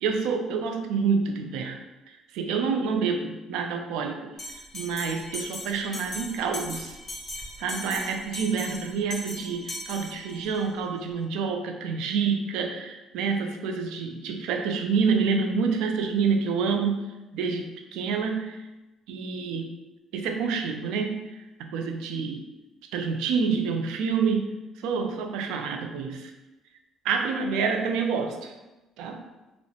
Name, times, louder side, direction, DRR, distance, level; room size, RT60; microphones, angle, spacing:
voice 1, 0.0-1.8 2.3-4.3 4.7-7.0 7.6-17.1 17.3-18.6 19.1-19.7 20.1-21.2 21.6-22.4 22.9-24.5 24.8-26.3 27.0-28.5 29.0-29.2, right 5 dB, 85° right, 4 dB, 0.3 m, -27 dB
Bell, 4.4-10.6, left 1 dB, 30° left, 0.8 m, -38 dB
2.9 x 2.0 x 2.8 m, 1.1 s
cardioid pair, 95°, 0 cm